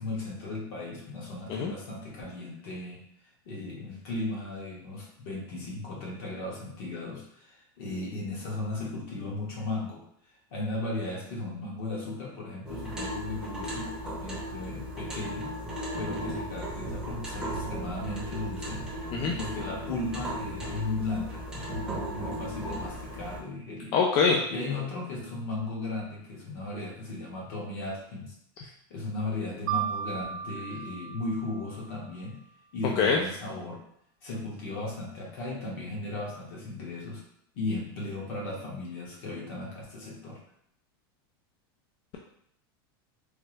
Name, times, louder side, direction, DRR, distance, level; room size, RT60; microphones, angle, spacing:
voice 1, 0.0-3.0 3.4-10.0 10.5-15.5 16.0-18.9 19.2-23.9 24.5-28.3 28.9-32.4 32.7-33.8 34.2-37.2 37.5-40.4, left 2 dB, 60° left, -3 dB, 1.2 m, -36 dB
sound 1, 12.6-23.4, equal, 5° right, 0.7 m, -36 dB
voice 2, 23.9-24.4 33.0-33.2, left 5 dB, 35° left, 0 dB, 0.3 m, -23 dB
Mallet percussion, 29.7-32.4, right 9 dB, 65° right, 0.8 m, -35 dB
3.3 x 2.0 x 3.1 m, 0.70 s
supercardioid pair, 150°, 13 cm